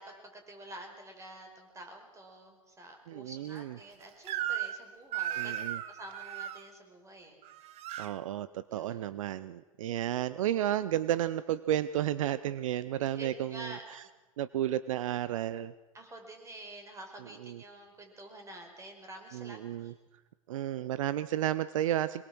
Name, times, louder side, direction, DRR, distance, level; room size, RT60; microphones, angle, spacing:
voice 1, 0.0-5.6 5.9-7.4 8.7-9.0 13.1-13.8 15.9-19.9, right 1 dB, 15° right, 4 dB, 5.2 m, -48 dB
voice 2, 3.1-3.7 5.4-5.8 8.0-14.0 14.4-15.7 17.2-17.6 19.3-19.9 20.5-22.2, right 12 dB, 65° right, 16 dB, 0.7 m, -32 dB
Crying sobbing / Screech, 4.3-4.8 5.1-6.6 7.4-8.1, right 11 dB, 35° right, 1.3 m, -35 dB
24.0 x 22.0 x 6.2 m, 1.2 s
hypercardioid pair, 105°, 18 cm